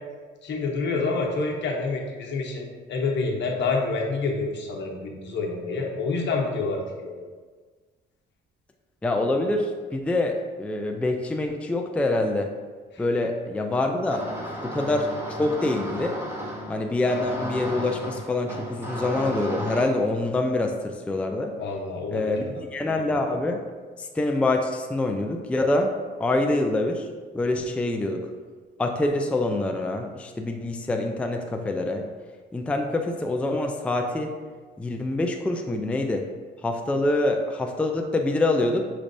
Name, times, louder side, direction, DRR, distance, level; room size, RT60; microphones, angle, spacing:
voice 1, 0.4-7.2 12.9-13.0 21.6-22.5, left 3 dB, 65° left, 0 dB, 0.9 m, -28 dB
voice 2, 9.0-12.5 13.0-14.2 14.6-16.2 16.7-21.5 22.1-23.6 24.0-25.9 26.2-27.1 27.3-28.2 28.8-32.0 32.5-34.3 34.8-36.3 36.6-38.8, left 2 dB, 5° left, 3 dB, 0.3 m, -25 dB
sound 1, 14.1-19.8, equal, 10° right, 1.0 m, -34 dB
6.1 x 3.3 x 2.6 m, 1.5 s
cardioid pair, 90°, 20 cm